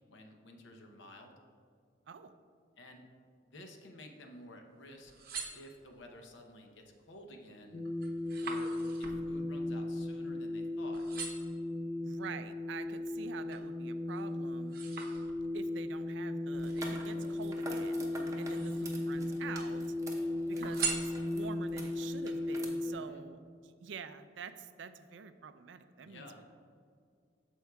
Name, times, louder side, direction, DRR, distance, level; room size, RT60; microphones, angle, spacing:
voice 1, 0.1-1.3 2.8-3.0 3.5-5.1 5.5-7.8 8.4-11.1 22.8-23.2 26.0-26.4, left 1 dB, 70° left, 3 dB, 0.8 m, -52 dB
sound 1, 4.9-6.2 6.8-7.2 7.5-10.6 10.9-11.6 12.2-13.7 14.1-15.7 16.6-17.7 18.3-19.1 19.4-20.1 20.6-21.7 22.2-22.3, right 6 dB, 50° right, 0.7 m, -43 dB
sound 2, 7.7-22.9, left 1 dB, 30° left, 0.4 m, -36 dB
voice 2, 12.0-14.8 15.5-18.0 18.4-19.9 20.5-26.4, right 6 dB, 70° right, 11 dB, 0.4 m, -47 dB
sound 3, 16.5-22.6, right 1 dB, 15° right, 0.7 m, -47 dB
13.5 x 4.6 x 2.3 m, 2.2 s
head